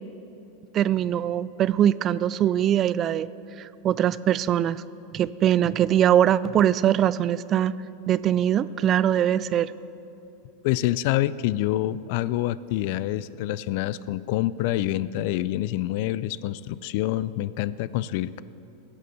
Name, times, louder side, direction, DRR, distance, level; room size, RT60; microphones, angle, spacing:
voice 1, 0.7-3.3 3.6-4.8 5.1-7.7 8.1-9.7, right 10 dB, 35° right, 18 dB, 0.3 m, -22 dB
voice 2, 10.6-18.4, left 14 dB, 60° left, 18 dB, 0.3 m, -26 dB
16.0 x 6.8 x 6.4 m, 2.9 s
hypercardioid pair, 105°, 0 cm